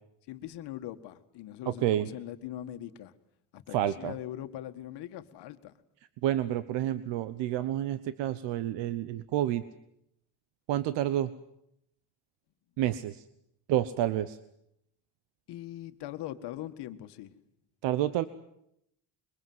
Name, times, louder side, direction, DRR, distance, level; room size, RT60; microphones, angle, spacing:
voice 1, 0.3-3.1 3.5-5.7 15.5-17.4, left 13 dB, 70° left, 9 dB, 1.7 m, -41 dB
voice 2, 1.7-2.1 3.7-4.1 6.2-9.6 10.7-11.3 12.8-13.2 13.7-14.4 17.8-18.3, right 12 dB, 80° right, 14 dB, 1.1 m, -29 dB
26.5 x 23.0 x 7.8 m, 0.78 s
cardioid pair, 165°, 42 cm